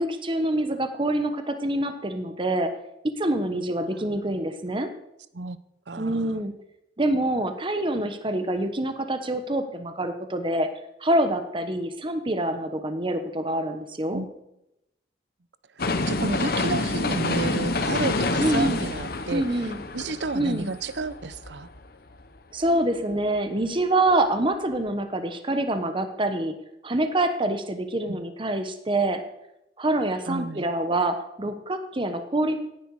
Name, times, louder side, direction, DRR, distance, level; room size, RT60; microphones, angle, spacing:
voice 1, 0.0-2.7 3.0-4.9 6.0-6.5 7.0-10.7 11.0-14.2 18.4-18.8 19.3-19.8 20.3-20.7 22.5-26.5 26.8-29.2 29.8-32.6, right 1 dB, 30° right, 8 dB, 1.1 m, -26 dB
voice 2, 3.8-4.4 5.3-5.6 5.9-6.4 14.1-14.3 15.8-21.7 28.1-28.2 30.3-30.7, right 4 dB, 75° right, 15 dB, 0.7 m, -32 dB
sound 1, 15.8-21.8 22.2-22.3, left 3 dB, 55° left, 1.0 m, -28 dB
16.5 x 10.5 x 4.8 m, 0.85 s
head